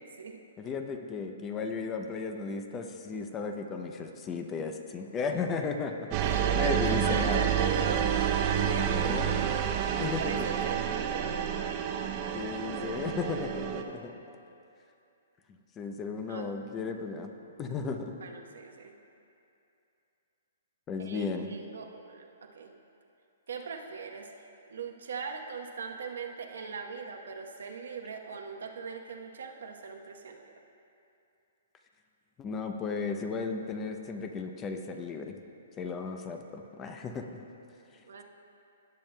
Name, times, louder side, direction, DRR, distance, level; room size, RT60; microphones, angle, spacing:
voice 1, 0.6-7.5 9.0-9.4 10.0-10.5 12.3-14.2 15.8-17.3 17.6-18.1 20.9-21.5 32.4-35.4 35.8-37.4, left 4 dB, 20° left, 5 dB, 0.5 m, -35 dB
sound 1, 6.1-13.8, right 9 dB, 30° right, 0.5 m, -29 dB
voice 2, 6.1-8.0 8.5-9.2 10.2-11.5 16.3-16.5 18.2-18.9 21.0-22.3 22.5-22.7 23.5-24.3 24.7-30.5 38.1-38.2, right 5 dB, 80° right, 2 dB, 0.9 m, -39 dB
17.5 x 7.3 x 2.2 m, 2.7 s
hypercardioid pair, 155°, 0 cm